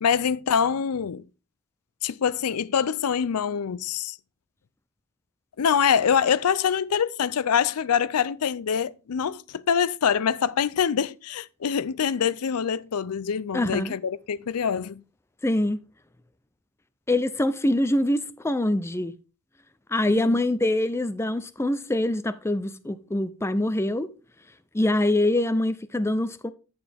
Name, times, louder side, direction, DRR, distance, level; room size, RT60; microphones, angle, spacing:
voice 1, 0.0-1.2 2.0-4.2 5.6-15.0 20.1-20.4, left 7 dB, 80° left, 0.5 m, -25 dB
voice 2, 13.5-13.9 15.4-15.8 17.1-19.1 19.9-24.1 24.7-26.5, left 1 dB, 10° left, 0.4 m, -24 dB
10.5 x 7.1 x 3.4 m
head